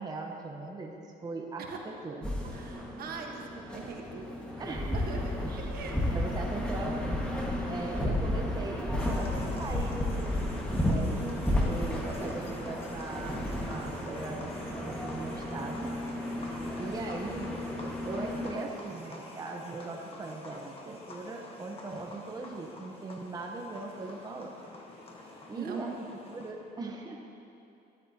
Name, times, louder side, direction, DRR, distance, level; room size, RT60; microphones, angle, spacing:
voice 1, 0.0-2.3 4.6-5.0 5.5-5.7 6.1-7.2 7.7-15.9 16.8-17.5 18.0-24.5 25.5-25.9 26.3-27.2, right 3 dB, 25° right, 1 dB, 0.9 m, -39 dB
sound 1, 2.2-18.5, left 1 dB, 5° left, 1.6 m, -33 dB
voice 2, 2.4-6.0 25.5-26.1, right 5 dB, 60° right, 1 dB, 1.3 m, -42 dB
sound 2, 9.0-26.5, left 2 dB, 35° left, 1.4 m, -49 dB
13.0 x 12.0 x 2.8 m, 2.7 s
cardioid pair, 110°, 17 cm